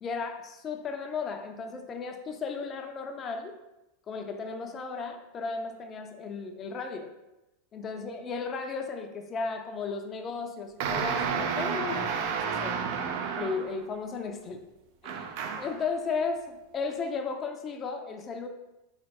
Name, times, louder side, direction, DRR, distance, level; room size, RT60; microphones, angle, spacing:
voice 1, 0.0-3.6 4.1-7.1 7.7-12.8 13.4-14.7 15.0-15.3 15.6-18.5, left 4 dB, 35° left, 5 dB, 0.5 m, -35 dB
sound 1, 10.8-13.8 15.0-15.8, right 6 dB, 60° right, 0.4 m, -31 dB
3.7 x 3.2 x 2.9 m, 0.95 s
hypercardioid pair, 90°, 0 cm